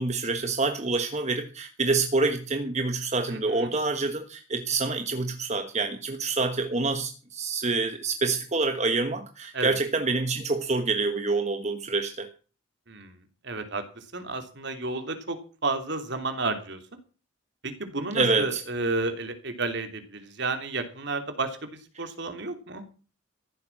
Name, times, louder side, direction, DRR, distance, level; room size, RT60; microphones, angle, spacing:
voice 1, 0.0-12.3 18.1-18.6, right 3 dB, 35° right, 7 dB, 1.3 m, -27 dB
voice 2, 3.3-3.7 9.5-9.8 12.9-13.1 13.4-15.4 15.6-16.8 17.6-22.8, right 3 dB, 55° right, 8 dB, 3.1 m, -32 dB
15.0 x 12.0 x 5.9 m, 0.37 s
head